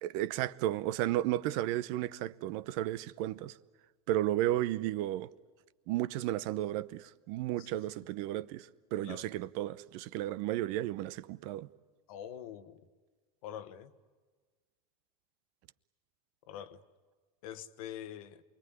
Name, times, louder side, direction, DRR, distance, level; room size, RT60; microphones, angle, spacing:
voice 1, 0.0-3.6 4.1-5.3 5.9-11.7, right 14 dB, 60° right, 0.8 m, -33 dB
voice 2, 12.1-12.9 13.4-13.9 16.5-16.8 17.4-18.4, left 10 dB, 70° left, 1.4 m, -44 dB
28.5 x 21.0 x 9.6 m
hypercardioid pair, 100°, 19 cm